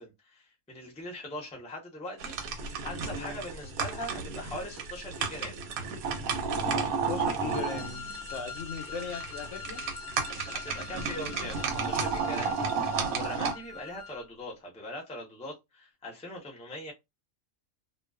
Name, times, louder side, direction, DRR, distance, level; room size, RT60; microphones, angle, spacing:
voice 1, 0.0-5.6 10.5-16.9, left 1 dB, 10° left, 0.5 m, -41 dB
sound 1, 2.2-13.5, right 5 dB, 85° right, 1.1 m, -32 dB
voice 2, 3.1-3.4 6.8-9.8, left 5 dB, 65° left, 0.8 m, -39 dB
Wind instrument woodwind instrument, 7.5-14.3, left 6 dB, 85° left, 0.4 m, -44 dB
2.3 x 2.3 x 2.3 m
omnidirectional pair, 1.5 m